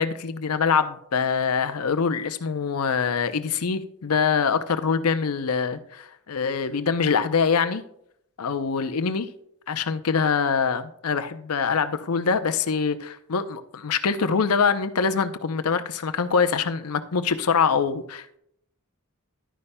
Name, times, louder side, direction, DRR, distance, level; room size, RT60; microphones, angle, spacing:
voice 1, 0.0-7.8 8.4-9.3 9.7-18.4, left 5 dB, 80° left, 0.6 m, -24 dB
11.5 x 9.6 x 2.2 m
head